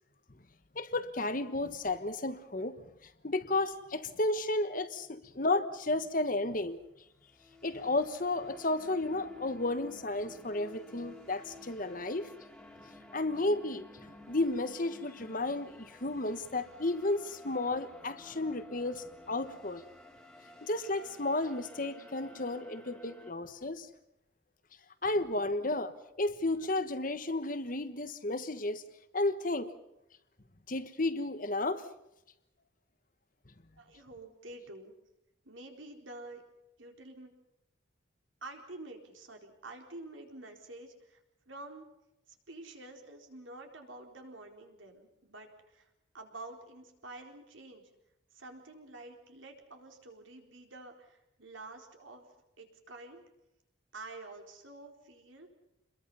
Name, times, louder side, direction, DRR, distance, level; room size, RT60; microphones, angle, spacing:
voice 1, 0.7-2.8 3.2-6.8 7.6-12.3 13.1-13.8 14.3-19.8 20.6-23.9 25.0-28.8 29.1-29.7 30.7-31.8, left 2 dB, 45° left, 1.2 m, -33 dB
sound 1, 7.1-23.3, left 2 dB, 5° left, 2.3 m, -53 dB
voice 2, 33.8-34.9 35.4-36.4 36.8-37.3 38.4-41.2 41.5-41.9 42.5-45.9 46.1-47.9 48.3-52.3 52.6-53.2 53.9-55.5, right 2 dB, 80° right, 4.2 m, -48 dB
28.0 x 22.0 x 5.6 m
head